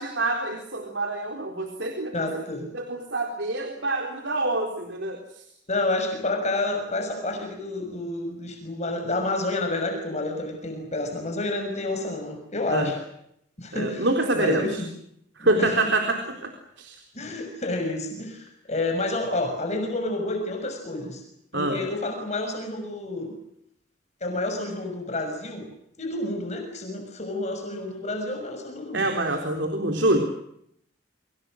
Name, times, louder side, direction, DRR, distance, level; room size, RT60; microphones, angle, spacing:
voice 1, 0.0-2.3 2.7-5.2 12.7-12.9 13.7-14.7 15.4-16.2 16.8-16.9 21.5-21.8 28.9-30.2, right 2 dB, 75° right, 3 dB, 4.0 m, -26 dB
voice 2, 2.1-2.7 5.7-13.0 13.6-14.1 14.3-14.9 15.4-15.8 17.1-21.2 21.5-23.3 24.2-25.7 26.0-29.1, left 2 dB, 40° left, 4 dB, 6.3 m, -29 dB
29.0 x 26.0 x 6.5 m, 0.76 s
head